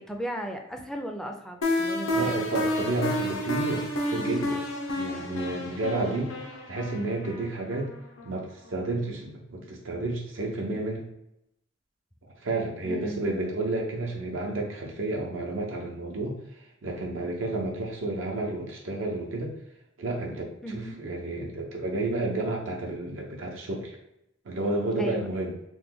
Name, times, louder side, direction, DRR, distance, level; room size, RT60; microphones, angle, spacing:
voice 1, 0.0-2.4 12.8-13.2 20.6-21.0 25.0-25.3, right 1 dB, 5° left, 3 dB, 0.3 m, -36 dB
sound 1, 1.6-8.4, left 1 dB, 85° left, 0.6 m, -30 dB
voice 2, 2.1-4.6 5.0-7.9 8.2-11.0 12.4-16.4 16.8-19.6 20.0-24.0 24.5-25.5, right 2 dB, 75° right, 0 dB, 0.6 m, -31 dB
3.0 x 2.1 x 3.5 m, 0.83 s
head